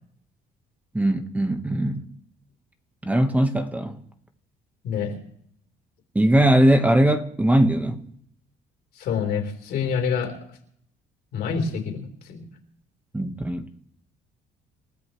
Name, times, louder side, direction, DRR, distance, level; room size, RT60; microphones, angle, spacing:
voice 1, 0.9-2.1 3.0-4.0 6.1-8.0 13.1-13.7, right 1 dB, 10° right, 1.3 m, -20 dB
voice 2, 9.0-10.3 11.3-12.5, left 6 dB, 70° left, 3.9 m, -27 dB
28.5 x 14.0 x 3.2 m
cardioid pair, 110°, 17 cm